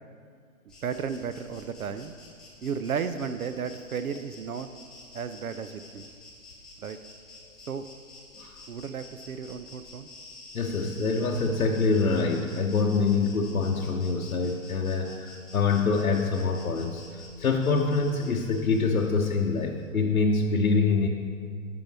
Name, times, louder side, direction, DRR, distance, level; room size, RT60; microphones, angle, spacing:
Insect, 0.7-19.9, left 2 dB, ahead, 1.0 m, -49 dB
voice 1, 0.8-2.1 2.6-4.7 5.1-6.1 6.8-7.0 7.7-7.9 8.7-10.1, right 6 dB, 80° right, 11 dB, 0.6 m, -33 dB
voice 2, 10.5-17.0 17.4-21.1, left 4 dB, 85° left, 0 dB, 0.8 m, -25 dB
9.8 x 5.4 x 4.6 m, 2.1 s
figure-of-eight pair, 130°, 42 cm